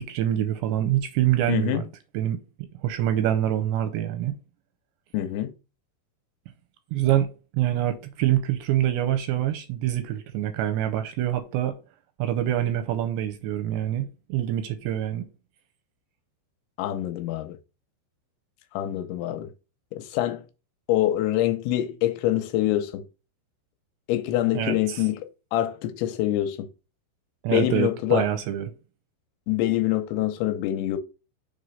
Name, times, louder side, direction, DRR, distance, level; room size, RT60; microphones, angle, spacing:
voice 1, 0.0-1.8 2.1-2.4 2.8-4.3 6.9-11.8 12.2-15.3 24.5-25.0 27.4-28.7, right 12 dB, 85° right, 2.6 m, -25 dB
voice 2, 1.5-1.8 5.1-5.5 16.8-17.6 18.7-19.5 19.9-20.4 20.9-23.1 24.1-26.7 27.5-28.3 29.5-31.0, left 13 dB, 90° left, 3.0 m, -25 dB
7.0 x 3.2 x 5.5 m
omnidirectional pair, 5.4 m